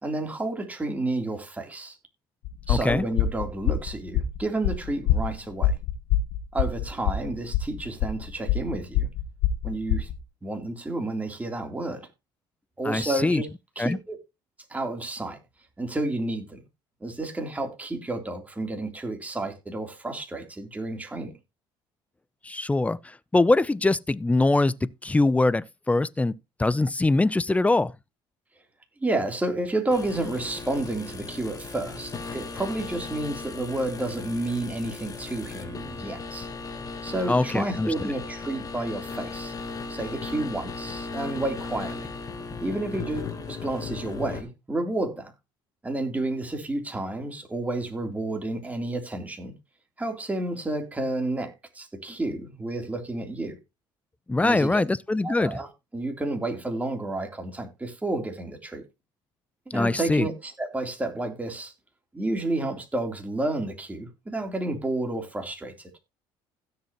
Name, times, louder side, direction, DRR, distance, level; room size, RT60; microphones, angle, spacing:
voice 1, 0.0-2.0 2.7-5.8 6.5-9.1 9.6-10.1 10.4-12.1 12.8-13.5 13.7-14.2 14.7-15.4 15.8-16.6 17.0-21.3 29.0-36.5 37.0-39.5 39.9-42.1 42.6-45.3 45.8-49.5 50.0-53.6 54.4-54.8 55.2-58.8 59.7-61.7 62.1-65.7, right 2 dB, 15° right, 3.4 m, -30 dB
sound 1, 2.4-10.2, left 10 dB, 75° left, 1.5 m, -25 dB
voice 2, 2.7-3.0 12.8-13.4 13.8-14.0 22.4-23.0 23.3-26.3 26.6-27.9 37.3-38.1 54.3-55.6 59.7-60.3, left 2 dB, 15° left, 0.6 m, -23 dB
sound 2, 29.9-44.4, left 4 dB, 35° left, 3.4 m, -37 dB
16.5 x 6.8 x 3.0 m
supercardioid pair, 85°, 11 cm